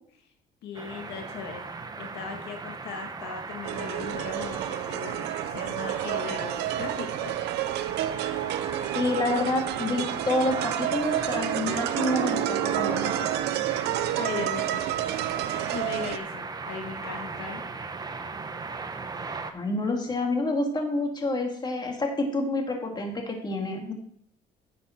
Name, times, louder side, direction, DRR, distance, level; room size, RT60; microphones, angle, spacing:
voice 1, 0.6-7.4 13.7-14.8 15.7-17.6, left 6 dB, 75° left, 4 dB, 1.7 m, -38 dB
sound 1, 0.7-19.5, right 4 dB, 25° right, 1.0 m, -38 dB
sound 2, 3.6-16.2, right 12 dB, 80° right, 0.7 m, -29 dB
voice 2, 8.9-13.3 19.5-23.9, left 2 dB, 25° left, 2 dB, 2.1 m, -28 dB
10.0 x 7.5 x 4.4 m, 0.69 s
cardioid pair, 110°, 17 cm